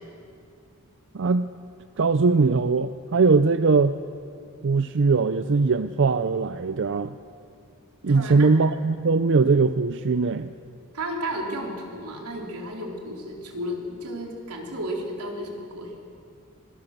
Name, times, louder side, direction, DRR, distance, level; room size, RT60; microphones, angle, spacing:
voice 1, 1.1-1.6 2.0-3.9 4.6-7.1 8.0-10.5, right 4 dB, 55° right, 11 dB, 0.5 m, -21 dB
voice 2, 8.1-8.5 10.9-15.9, equal, 85° right, 0 dB, 3.8 m, -33 dB
24.0 x 18.5 x 6.7 m, 2.3 s
head